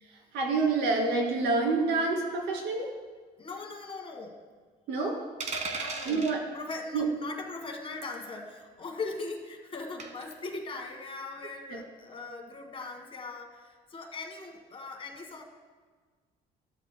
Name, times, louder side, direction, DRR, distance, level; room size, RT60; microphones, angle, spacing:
voice 1, 0.3-2.9 4.9-5.2 6.0-6.4 6.9-7.0, right 3 dB, 80° right, 0 dB, 2.7 m, -27 dB
voice 2, 3.4-4.4 5.7-6.3 6.5-15.4, left 3 dB, 30° left, 3 dB, 1.6 m, -40 dB
sound 1, 5.4-6.4 8.0-8.2 10.0-10.3, right 4 dB, 45° right, 1.3 m, -35 dB
14.5 x 12.5 x 2.2 m, 1.5 s
cardioid pair, 110°, 17 cm